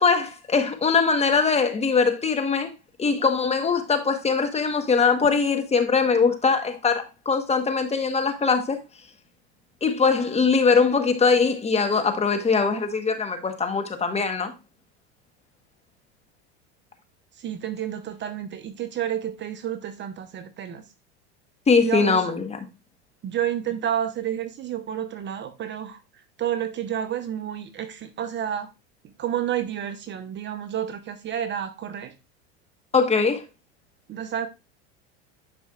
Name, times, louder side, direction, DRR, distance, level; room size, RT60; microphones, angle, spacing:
voice 1, 0.0-2.7 3.0-8.8 9.8-14.5 21.7-22.6 32.9-33.4, left 5 dB, 20° left, 1.3 m, -21 dB
voice 2, 17.4-20.8 21.8-22.2 23.2-26.0 26.4-28.7 29.2-32.1 34.1-34.5, right 10 dB, 35° right, 0.9 m, -30 dB
10.5 x 5.4 x 2.5 m
hypercardioid pair, 100°, 33 cm